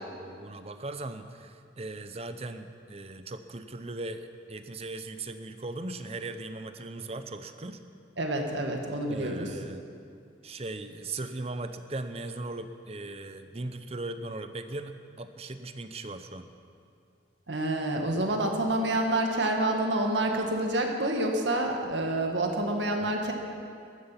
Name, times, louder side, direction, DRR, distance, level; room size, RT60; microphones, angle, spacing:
voice 1, 0.0-7.8 9.1-9.8 10.4-16.5 23.0-23.1, right 2 dB, 35° right, 9 dB, 0.7 m, -38 dB
voice 2, 8.2-9.6 17.5-23.3, right 1 dB, 80° right, 2 dB, 1.8 m, -28 dB
15.0 x 13.0 x 5.8 m, 2.4 s
head